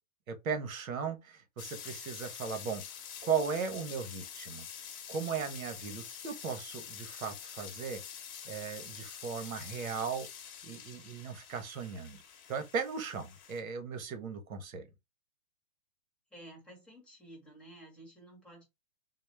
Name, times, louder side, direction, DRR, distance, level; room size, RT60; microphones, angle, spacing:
voice 1, 0.3-2.8 3.2-4.6 5.1-8.0 8.4-10.3 10.6-12.2 12.5-14.9, right 6 dB, 75° right, 1.0 m, -37 dB
sound 1, 1.6-13.6, left 8 dB, 35° left, 1.0 m, -47 dB
voice 2, 16.3-18.6, right 1 dB, ahead, 1.1 m, -52 dB
4.1 x 2.0 x 3.2 m
hypercardioid pair, 145°, 41 cm